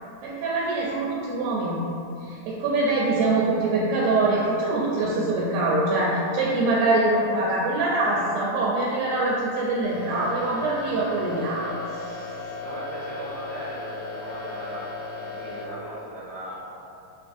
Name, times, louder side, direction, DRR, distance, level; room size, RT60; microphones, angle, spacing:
voice 1, 0.2-1.9 2.2-12.2, right 2 dB, 90° right, -5 dB, 2.0 m, -24 dB
sound 1, 9.8-15.7, left 3 dB, 90° left, 2.1 m, -36 dB
voice 2, 12.6-14.9 15.2-16.6, right 1 dB, 75° right, -11 dB, 1.8 m, -37 dB
5.6 x 2.4 x 2.5 m, 2.7 s
omnidirectional pair, 3.4 m